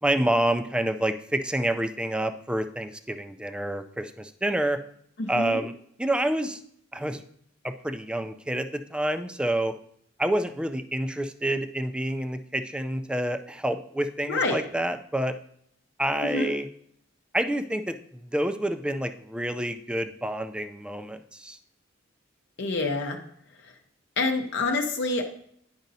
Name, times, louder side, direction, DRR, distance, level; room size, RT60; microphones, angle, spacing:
voice 1, 0.0-4.8 5.3-5.7 6.0-6.6 6.9-7.2 7.6-9.8 10.2-15.4 16.0-16.7 17.3-21.6, right 1 dB, 5° right, 9 dB, 0.4 m, -28 dB
voice 2, 5.2-5.6 14.3-14.6 16.3-16.5 22.6-23.2 24.2-25.2, left 3 dB, 60° left, 3 dB, 0.7 m, -27 dB
10.5 x 5.1 x 2.7 m, 0.67 s
head